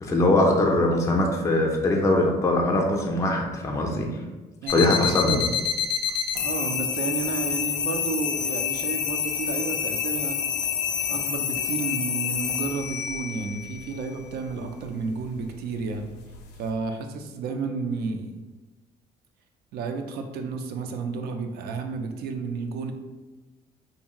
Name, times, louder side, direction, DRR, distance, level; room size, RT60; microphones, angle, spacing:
voice 1, 0.0-4.1 4.7-5.4, left 1 dB, 20° left, 0 dB, 0.4 m, -22 dB
voice 2, 4.6-5.2 6.4-10.4 11.1-16.1 16.6-18.3 19.7-22.9, right 4 dB, 70° right, 6 dB, 0.4 m, -31 dB
sound 1, 4.7-16.7, left 7 dB, 80° left, 0.4 m, -29 dB
2.6 x 2.3 x 2.9 m, 1.2 s
cardioid pair, 110°, 17 cm